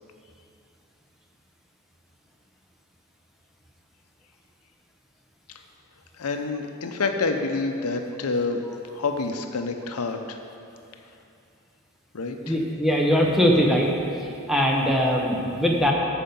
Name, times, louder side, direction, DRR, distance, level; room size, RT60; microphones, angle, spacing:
voice 1, 6.2-8.6 8.9-10.4 12.1-12.6, left 3 dB, 90° left, 5 dB, 0.7 m, -27 dB
voice 2, 12.4-13.9 14.5-15.9, equal, ahead, -1 dB, 0.8 m, -21 dB
8.6 x 6.7 x 5.4 m, 2.6 s
head